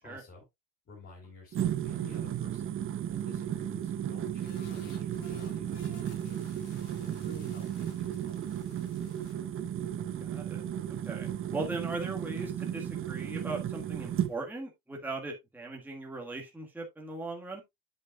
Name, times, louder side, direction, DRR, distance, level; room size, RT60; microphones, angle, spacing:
voice 1, 0.0-0.4 0.8-2.8 3.1-6.4 7.0-8.6, left 2 dB, 30° left, 4.1 m, -52 dB
sound 1, 1.2-1.4 3.0-3.3 5.1-5.4 6.6-6.8 8.0-8.4 9.3-9.5, left 3 dB, 15° left, 3.3 m, -63 dB
sound 2, 1.5-14.3, right 10 dB, 30° right, 0.7 m, -34 dB
sound 3, 4.4-9.3, left 7 dB, 75° left, 2.8 m, -56 dB
voice 2, 10.2-10.6 11.1-17.6, right 2 dB, 5° right, 1.6 m, -39 dB
8.2 x 7.8 x 2.3 m
cardioid pair, 135°, 42 cm